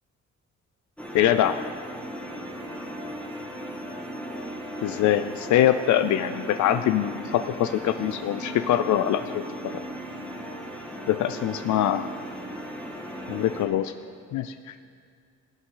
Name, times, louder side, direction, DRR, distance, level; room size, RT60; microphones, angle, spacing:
sound 1, 1.0-13.7, right 1 dB, 5° left, 1.7 m, -37 dB
voice 1, 1.1-1.6 4.8-9.4 11.1-12.1 13.3-13.9 14.3-14.7, left 11 dB, 70° left, 10 dB, 0.5 m, -23 dB
17.0 x 8.8 x 3.9 m, 2.2 s
cardioid pair, 90°, 30 cm